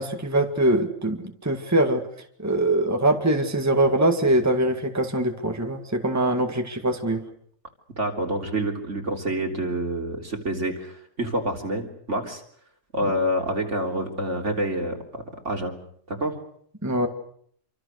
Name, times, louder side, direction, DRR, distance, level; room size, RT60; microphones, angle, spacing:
voice 1, 0.0-2.1 2.4-7.2 16.8-17.1, right 1 dB, 10° right, 4 dB, 2.0 m, -23 dB
voice 2, 8.0-12.4 12.9-15.0 15.5-15.7 16.1-16.4, right 1 dB, 60° right, 2 dB, 3.8 m, -27 dB
27.5 x 25.0 x 6.5 m, 0.65 s
omnidirectional pair, 1.4 m